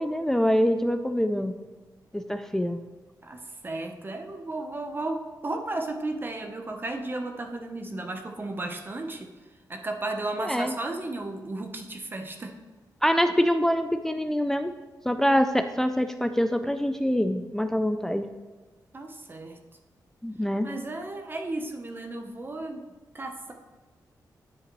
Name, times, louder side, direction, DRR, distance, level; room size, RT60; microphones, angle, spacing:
voice 1, 0.0-1.6 2.1-2.8 10.5-10.7 13.0-14.7 15.1-18.3 20.2-20.7, equal, 5° left, 8 dB, 0.3 m, -25 dB
voice 2, 3.2-12.6 18.9-19.6 20.4-22.8 23.1-23.5, right 2 dB, 30° right, 4 dB, 0.8 m, -34 dB
9.5 x 6.8 x 3.0 m, 1.3 s
wide cardioid pair, 100°, 7 cm